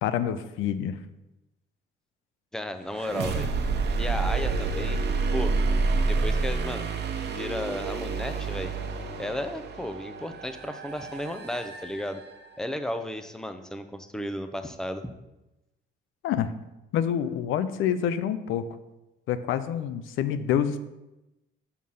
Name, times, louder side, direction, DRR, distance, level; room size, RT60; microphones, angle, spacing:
voice 1, 0.0-1.0 16.2-16.5 16.9-18.6 19.3-20.8, left 9 dB, 85° left, 12 dB, 0.6 m, -27 dB
voice 2, 2.5-3.5 4.0-5.0 5.3-5.6 6.0-6.9 7.3-8.7 9.2-12.2 12.6-15.1, left 1 dB, 5° left, 8 dB, 0.6 m, -34 dB
sound 1, 2.9-12.7, right 4 dB, 60° right, 1.0 m, -29 dB
6.3 x 5.8 x 5.5 m, 0.97 s
cardioid pair, 90°, 20 cm